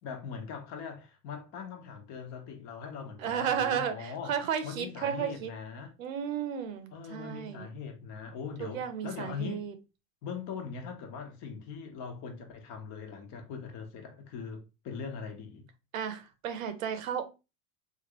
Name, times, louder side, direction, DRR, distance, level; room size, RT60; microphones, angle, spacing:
voice 1, 0.0-4.4 4.6-5.9 6.9-9.6 10.2-15.7, left 6 dB, 45° left, 0.9 m, -41 dB
voice 2, 3.2-5.5 6.0-7.7 8.6-9.7 15.9-17.2, right 8 dB, 85° right, 0.8 m, -33 dB
3.0 x 2.5 x 2.9 m
supercardioid pair, 120°, 39 cm